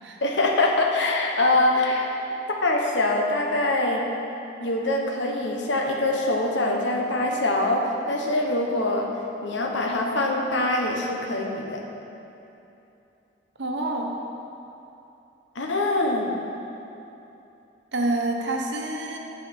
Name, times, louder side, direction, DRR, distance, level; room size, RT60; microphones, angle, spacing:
voice 1, 0.2-2.1 2.6-4.0 4.6-9.1 9.4-11.8 15.5-16.3, left 2 dB, 75° left, 0 dB, 1.1 m, -24 dB
voice 2, 13.6-14.2 17.9-19.2, right 2 dB, 70° right, 1 dB, 1.0 m, -27 dB
10.5 x 4.9 x 6.1 m, 2.9 s
head